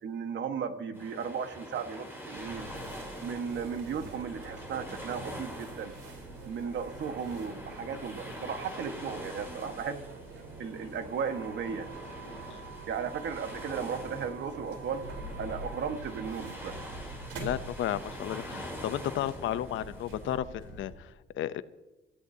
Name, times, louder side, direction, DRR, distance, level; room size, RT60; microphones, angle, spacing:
voice 1, 0.0-2.7 3.2-5.9 6.4-10.0 10.6-11.9 12.9-15.0 15.4-16.7, right 6 dB, 65° right, 7 dB, 1.5 m, -35 dB
sound 1, 0.9-20.4, equal, 10° right, 6.9 m, -45 dB
sound 2, 2.3-20.9, right 3 dB, 85° right, 4.1 m, -45 dB
voice 2, 17.4-21.6, left 11 dB, 80° left, 14 dB, 0.7 m, -33 dB
26.0 x 16.0 x 2.8 m, 1.0 s
cardioid pair, 90°, 20 cm